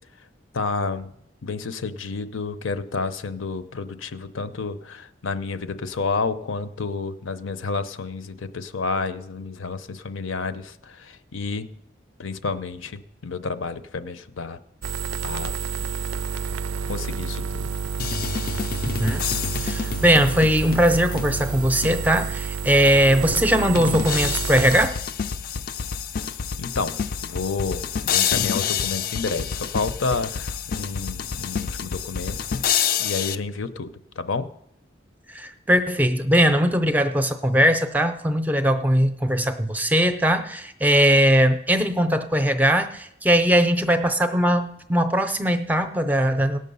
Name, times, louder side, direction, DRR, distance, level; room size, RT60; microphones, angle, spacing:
voice 1, 0.5-1.1 1.4-11.7 12.2-14.6 15.2-15.5 16.9-17.7 26.2-27.0 27.3-32.6 33.0-34.5, left 4 dB, 85° left, 12 dB, 0.7 m, -30 dB
sound 1, 14.8-24.9, right 5 dB, 80° right, 0.4 m, -29 dB
sound 2, 18.0-22.4 22.9-23.0 23.8-33.4, left 7 dB, 45° left, 0.4 m, -28 dB
voice 2, 19.6-25.0 35.3-46.6, equal, 10° right, 9 dB, 0.5 m, -20 dB
18.0 x 6.5 x 5.4 m, 0.78 s
head